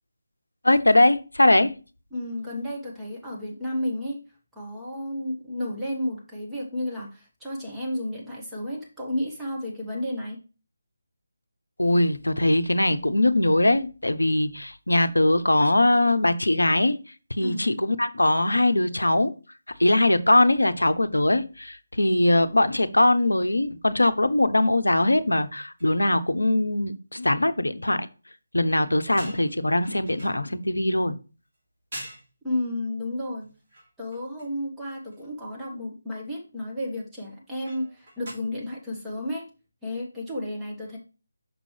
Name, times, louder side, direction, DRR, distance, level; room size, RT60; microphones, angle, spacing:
voice 1, 0.6-1.7 11.8-17.0 17.3-19.3 19.8-28.1 28.5-31.2, left 1 dB, 75° left, 0.7 m, -21 dB
voice 2, 2.1-4.2 4.5-10.4 17.4-17.6 32.4-33.5 34.0-39.4 39.8-41.0, left 1 dB, 5° right, 1.5 m, -32 dB
sound 1, 24.9-25.1 25.4-25.5 25.8-26.1 28.7-30.9 31.5-31.6 31.9-32.3 33.4-34.6 35.1-35.3 37.7-38.3, right 1 dB, 35° right, 3.2 m, -44 dB
6.1 x 5.2 x 3.3 m
figure-of-eight pair, 155°, 0 cm